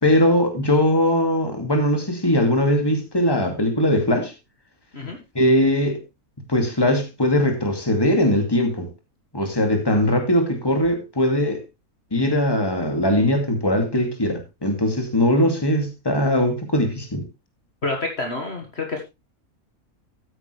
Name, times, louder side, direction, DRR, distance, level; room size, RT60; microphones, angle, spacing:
voice 1, 0.0-4.3 5.3-6.0 6.5-8.9 9.3-11.6 12.1-17.2, left 1 dB, 15° left, 2.4 m, -20 dB
voice 2, 17.8-19.0, left 3 dB, 45° left, 2.0 m, -28 dB
13.5 x 9.1 x 3.3 m
omnidirectional pair, 1.5 m